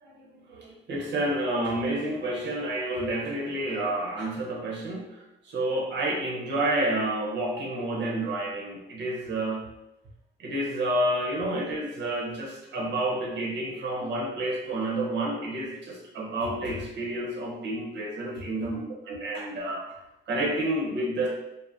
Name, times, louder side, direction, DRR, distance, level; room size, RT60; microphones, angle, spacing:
voice 1, 0.0-5.2 5.4-9.6 10.4-20.0 20.3-21.3, right 1 dB, 65° right, -2 dB, 0.8 m, -29 dB
2.6 x 2.1 x 3.4 m, 0.92 s
cardioid pair, 90°, 20 cm